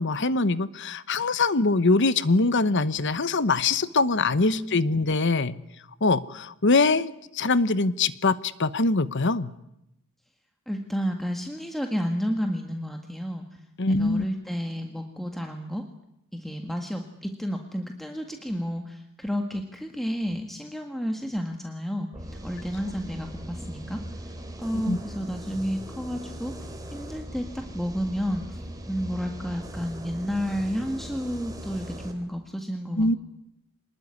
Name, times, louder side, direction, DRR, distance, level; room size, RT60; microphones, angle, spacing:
voice 1, 0.0-5.6 6.0-7.1 7.3-9.5 13.8-14.2 24.7-25.0 33.0-33.2, left 3 dB, 55° left, 15 dB, 1.0 m, -23 dB
voice 2, 4.5-4.9 10.7-13.6 13.9-15.8 16.3-22.1 22.4-26.5 26.9-33.2, equal, ahead, 3 dB, 1.7 m, -31 dB
sound 1, 22.1-32.1, right 1 dB, 15° right, 3.5 m, -40 dB
25.5 x 20.5 x 9.8 m, 0.83 s
head